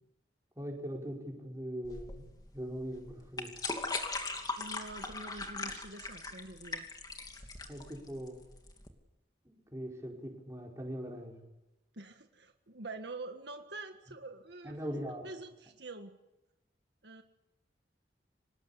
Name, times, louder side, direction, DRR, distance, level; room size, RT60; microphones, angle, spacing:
voice 1, 0.6-2.3 2.5-3.5 7.7-8.4 9.5-11.4 14.6-15.3, equal, 15° right, -1 dB, 5.4 m, -41 dB
sound 1, 1.8-8.9, left 3 dB, 20° left, 2.8 m, -39 dB
voice 2, 4.6-6.9 11.9-14.8 15.2-16.2 17.0-17.2, right 2 dB, 70° right, 5 dB, 1.7 m, -46 dB
26.0 x 19.5 x 8.5 m, 0.98 s
head